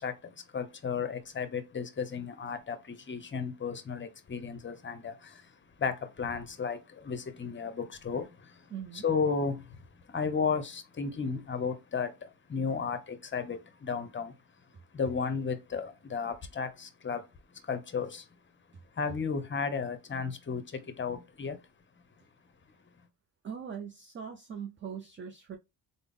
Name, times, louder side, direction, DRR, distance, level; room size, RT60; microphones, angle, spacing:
voice 1, 0.0-14.3 14.9-17.2 17.6-18.3 18.9-21.6, left 5 dB, 25° left, 0.7 m, -34 dB
voice 2, 8.7-9.1 23.4-25.6, right 7 dB, 30° right, 0.4 m, -41 dB
3.4 x 2.0 x 3.6 m
cardioid pair, 75°, 43 cm